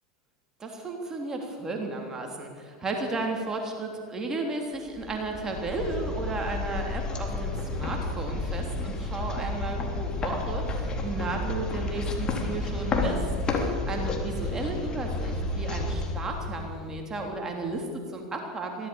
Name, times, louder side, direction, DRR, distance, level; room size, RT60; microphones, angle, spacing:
voice 1, 0.6-18.9, right 2 dB, 20° right, 2 dB, 3.5 m, -34 dB
sound 1, 4.9-17.0, left 2 dB, 30° left, 3.5 m, -31 dB
22.5 x 16.0 x 7.2 m, 2.1 s
figure-of-eight pair, 85°, 3 cm